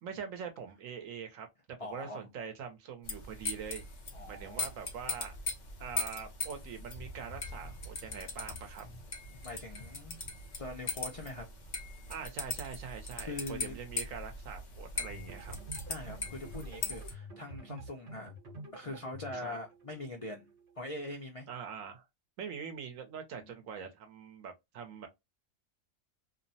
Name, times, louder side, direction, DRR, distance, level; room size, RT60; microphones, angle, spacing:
voice 1, 0.0-1.5 1.8-3.8 4.3-5.4 5.8-8.8 12.1-15.5 19.3-19.6 21.5-22.0 22.4-25.1, right 7 dB, 80° right, 1.1 m, -43 dB
voice 2, 1.8-2.2 4.1-4.7 9.4-10.2 10.6-11.5 13.2-13.8 15.9-18.3 18.7-20.5 20.8-21.5, left 2 dB, 60° left, 0.3 m, -42 dB
sound 1, 3.0-17.1, left 3 dB, 45° left, 0.7 m, -40 dB
sound 2, 15.0-20.8, equal, 60° right, 1.4 m, -49 dB
2.9 x 2.0 x 2.6 m
omnidirectional pair, 1.4 m